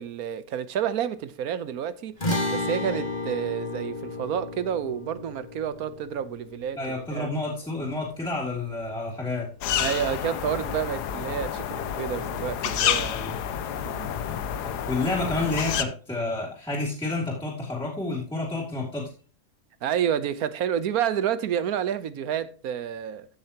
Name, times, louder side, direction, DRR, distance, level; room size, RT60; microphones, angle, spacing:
voice 1, 0.0-2.2 2.5-6.8 7.1-7.3 9.8-13.2 13.7-14.1 19.8-23.3, right 9 dB, 65° right, 1.2 m, -29 dB
sound 1, 2.2-8.7, left 2 dB, 25° left, 1.8 m, -33 dB
voice 2, 6.8-9.5 13.1-13.3 14.6-19.1, left 2 dB, 5° left, 2.9 m, -30 dB
sound 2, 9.6-15.8, left 9 dB, 80° left, 1.3 m, -29 dB
14.5 x 6.7 x 2.9 m
omnidirectional pair, 1.7 m